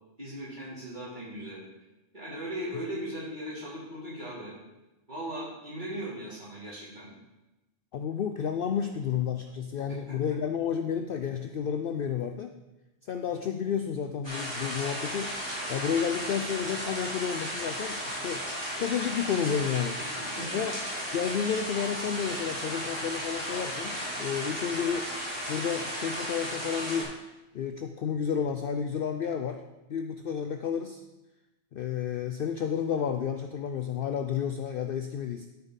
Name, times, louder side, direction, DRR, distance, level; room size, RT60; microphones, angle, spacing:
voice 1, 0.2-1.6 2.1-4.5 5.1-7.1 9.9-10.2 20.0-20.1 20.4-20.9, right 1 dB, 40° right, -8 dB, 3.5 m, -38 dB
voice 2, 7.9-12.5 13.1-15.3 15.7-18.5 18.8-20.0 20.5-20.8 21.1-25.1 25.5-27.1 27.5-29.6 29.9-31.0 31.7-35.5, left 7 dB, 60° left, 6 dB, 0.6 m, -31 dB
sound 1, 14.2-27.0, equal, 20° right, 3.4 m, -35 dB
12.5 x 5.7 x 4.0 m, 1.0 s
omnidirectional pair, 1.3 m